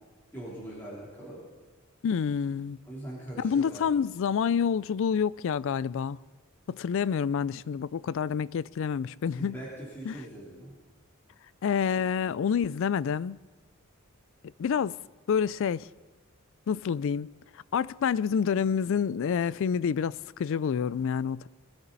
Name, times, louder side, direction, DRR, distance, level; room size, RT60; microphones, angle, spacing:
voice 1, 0.3-1.4 2.9-3.9 9.4-10.7, right 1 dB, 10° left, 3.5 m, -41 dB
voice 2, 2.0-2.8 3.4-6.2 6.7-9.6 10.1-10.2 11.6-13.4 14.6-15.0 15.3-15.9 16.7-17.3 17.7-21.5, left 7 dB, 65° left, 0.3 m, -28 dB
22.0 x 13.0 x 4.1 m
head